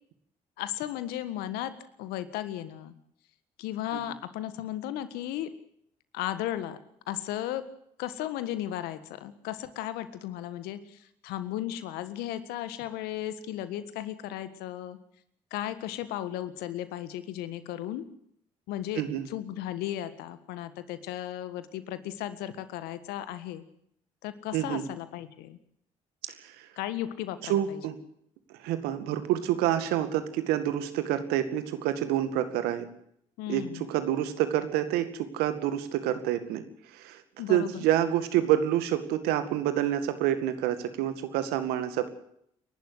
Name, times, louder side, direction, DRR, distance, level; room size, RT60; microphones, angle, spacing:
voice 1, 0.6-2.9 3.6-5.5 6.1-6.8 7.1-7.7 8.0-15.0 15.5-18.1 18.7-23.6 24.2-25.6 26.8-27.8 33.4-33.8 37.4-37.8, left 12 dB, 75° left, 13 dB, 1.7 m, -35 dB
voice 2, 19.0-19.3 24.5-24.9 26.4-26.7 27.4-28.0 28.5-32.9 33.5-36.6 36.9-37.2 37.5-42.1, right 11 dB, 80° right, 10 dB, 2.1 m, -28 dB
29.0 x 12.0 x 8.0 m, 0.71 s
hypercardioid pair, 50°, 16 cm